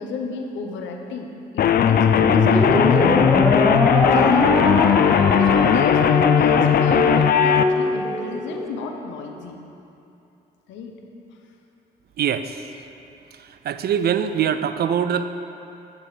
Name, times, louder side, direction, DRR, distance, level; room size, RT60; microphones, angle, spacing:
voice 1, 0.0-3.1 4.1-9.6 10.7-11.0, left 4 dB, 85° left, 3 dB, 0.8 m, -33 dB
sound 1, 1.6-7.6, left 8 dB, 55° left, 0.4 m, -17 dB
sound 2, 2.1-8.7, equal, ahead, 0.9 m, -23 dB
voice 2, 12.2-12.6 13.6-15.3, right 8 dB, 60° right, 11 dB, 0.4 m, -22 dB
8.5 x 5.4 x 4.9 m, 2.8 s
supercardioid pair, 55°, 19 cm